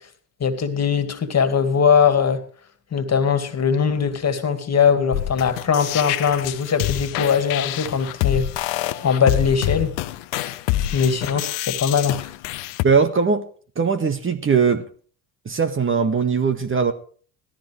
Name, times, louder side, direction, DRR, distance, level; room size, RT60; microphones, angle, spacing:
voice 1, 0.4-2.4 2.9-9.9 10.9-12.3, left 6 dB, 35° left, 2.5 m, -21 dB
sound 1, 5.1-12.9, left 14 dB, 65° left, 1.1 m, -26 dB
voice 2, 12.8-13.4 13.7-14.8 15.4-16.9, right 5 dB, 25° right, 1.8 m, -20 dB
17.0 x 13.5 x 3.3 m
hypercardioid pair, 70°, 46 cm